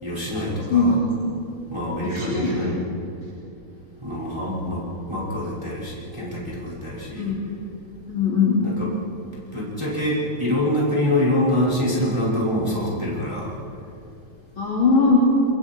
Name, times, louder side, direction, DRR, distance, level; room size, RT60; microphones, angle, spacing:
voice 1, 0.0-1.0 1.7-2.8 4.0-7.3 8.6-8.9 9.5-13.5, left 1 dB, 5° right, -7 dB, 4.5 m, -25 dB
voice 2, 2.0-2.6 7.1-7.4 8.1-8.6 14.6-15.2, left 4 dB, 30° left, -4 dB, 3.1 m, -20 dB
27.0 x 24.5 x 4.6 m, 2.6 s
omnidirectional pair, 5.9 m